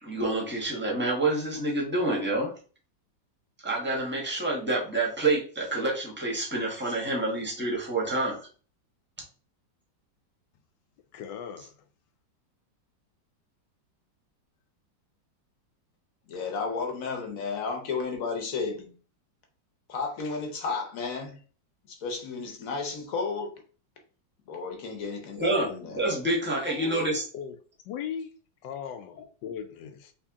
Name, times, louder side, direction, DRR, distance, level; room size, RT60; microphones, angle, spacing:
voice 1, 0.0-2.5 3.6-8.4 25.4-27.2, right 2 dB, 10° right, 0.8 m, -28 dB
voice 2, 11.1-11.7 26.7-27.1 27.3-27.6 27.8-28.3 28.6-30.1, left 8 dB, 75° left, 1.2 m, -38 dB
voice 3, 16.3-18.9 19.9-21.4 21.9-23.5 24.5-26.1, left 4 dB, 55° left, 1.2 m, -33 dB
3.5 x 2.6 x 3.5 m
omnidirectional pair, 2.0 m